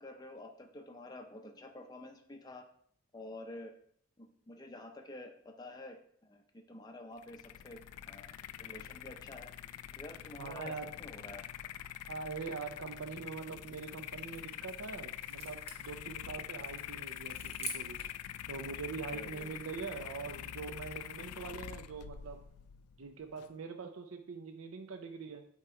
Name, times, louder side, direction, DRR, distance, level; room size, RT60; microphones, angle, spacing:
voice 1, 0.0-2.6 3.1-3.7 4.2-6.0 6.2-6.4 6.7-7.8 8.1-9.5 10.0-11.4 19.1-19.6, left 1 dB, 20° left, 4 dB, 0.5 m, -49 dB
sound 1, 7.2-23.5, left 11 dB, 85° left, 0.3 m, -45 dB
voice 2, 10.4-10.9 12.1-18.0 18.5-22.4 23.0-25.5, right 5 dB, 75° right, 5 dB, 0.5 m, -43 dB
sound 2, 13.6-18.2, right 3 dB, 25° right, 1.0 m, -49 dB
8.1 x 2.9 x 4.7 m, 0.64 s
head